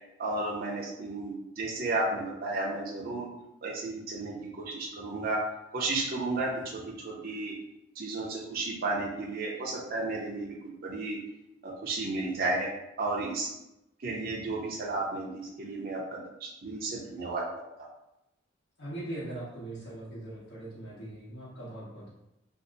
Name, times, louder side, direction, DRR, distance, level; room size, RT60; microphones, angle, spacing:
voice 1, 0.2-3.3 3.6-5.4 5.7-7.5 8.0-11.2 11.6-12.7 13.0-13.5 14.0-17.4, right 2 dB, 50° right, -4 dB, 0.6 m, -33 dB
voice 2, 18.8-22.1, right 1 dB, 70° left, -9 dB, 1.0 m, -40 dB
2.7 x 2.5 x 3.8 m, 0.89 s
head